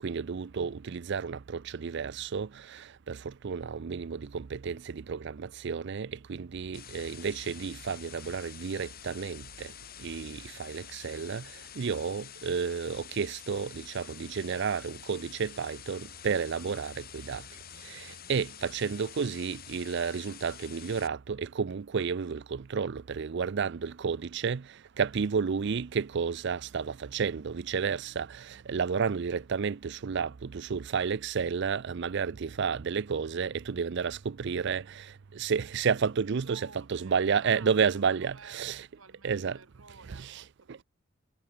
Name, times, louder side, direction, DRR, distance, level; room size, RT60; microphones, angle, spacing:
voice 1, 0.0-9.7 10.0-17.4 17.8-38.9 39.2-39.6 40.1-40.4 40.7-40.8, right 6 dB, 55° right, 0.5 m, -31 dB
sound 1, 6.7-21.1, left 11 dB, 45° left, 1.6 m, -48 dB
voice 2, 36.4-40.8, right 4 dB, 75° right, 3.8 m, -53 dB
head